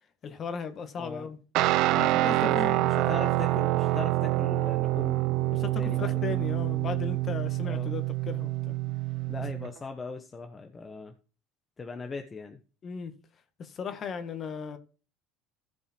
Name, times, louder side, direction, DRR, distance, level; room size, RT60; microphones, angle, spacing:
voice 1, 0.2-1.4 2.0-2.8 5.5-8.7 12.8-13.1 13.6-14.8, left 6 dB, 35° left, 1.7 m, -36 dB
Guitar, 1.5-9.7, right 17 dB, 65° right, 0.6 m, -26 dB
voice 2, 2.4-5.5 5.8-6.4 7.6-7.9 9.3-11.1 11.8-12.6, left 4 dB, 20° left, 1.1 m, -39 dB
15.0 x 5.3 x 4.5 m
supercardioid pair, 120°, 0 cm